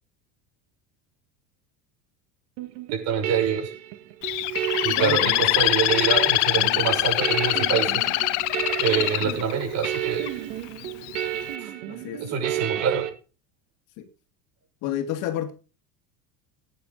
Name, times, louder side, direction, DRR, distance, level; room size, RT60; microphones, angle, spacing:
sound 1, 2.6-13.1, right 12 dB, 70° right, 2.0 m, -32 dB
voice 1, 2.9-3.7 4.8-8.0 8.8-10.3 11.6-11.7 12.2-13.1, right 7 dB, 50° right, 3 dB, 6.5 m, -26 dB
Bird, 4.2-10.3 10.8-11.2, left 19 dB, 75° left, 1.0 m, -23 dB
voice 2, 5.0-5.3 9.2-9.4 11.9-12.2 14.0-14.1 14.8-15.5, left 11 dB, 55° left, 7 dB, 2.3 m, -30 dB
17.5 x 9.7 x 4.1 m, 0.35 s
cardioid pair, 155°, 36 cm